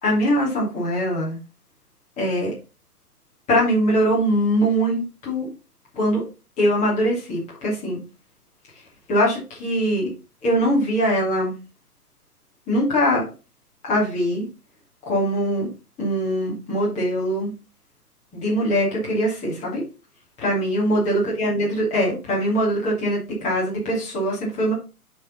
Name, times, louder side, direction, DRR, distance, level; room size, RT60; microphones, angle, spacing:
voice 1, 0.0-1.4 2.2-2.5 3.5-5.5 5.9-6.2 6.6-8.0 9.1-10.1 10.4-11.5 12.7-13.2 13.8-14.5 15.1-15.7 16.0-17.5 18.3-19.8 20.4-24.7, equal, 15° left, -5 dB, 3.0 m, -22 dB
8.6 x 4.5 x 4.1 m, 0.31 s
figure-of-eight pair, 125°, 45 cm